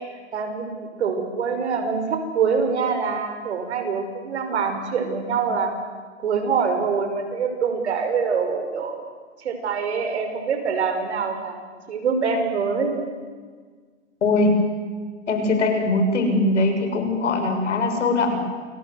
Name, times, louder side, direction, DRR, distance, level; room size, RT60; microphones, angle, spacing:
voice 1, 0.3-0.7 1.0-5.7 6.2-9.0 9.4-11.6 11.9-13.0, right 5 dB, 65° right, 6 dB, 6.0 m, -24 dB
voice 2, 14.2-14.5 15.3-18.4, left 2 dB, 75° left, 5 dB, 7.0 m, -21 dB
28.5 x 22.5 x 8.0 m, 1.5 s
hypercardioid pair, 150°, 35 cm